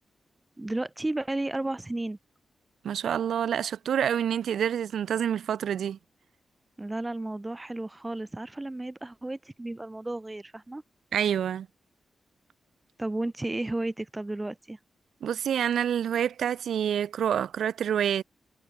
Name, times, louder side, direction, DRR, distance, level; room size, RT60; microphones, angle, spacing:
voice 1, 0.6-2.2 6.8-10.8 13.0-14.8, right 2 dB, 20° right, 5.9 m, -33 dB
voice 2, 2.8-6.0 11.1-11.7 15.2-18.2, right 9 dB, 90° right, 5.0 m, -27 dB
cardioid pair, 70°, 0 cm